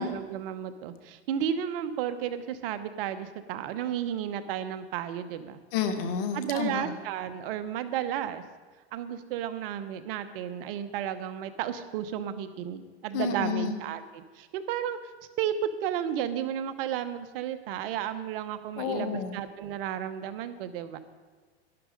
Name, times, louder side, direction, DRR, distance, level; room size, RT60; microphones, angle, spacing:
voice 1, 0.0-5.6 6.3-8.4 8.9-15.0 15.4-15.5 15.8-21.0, right 10 dB, 60° right, 11 dB, 1.1 m, -33 dB
voice 2, 5.7-6.9 13.1-13.8 18.8-19.4, left 6 dB, 60° left, 7 dB, 1.8 m, -30 dB
11.5 x 11.5 x 5.3 m, 1.4 s
hypercardioid pair, 125°, 32 cm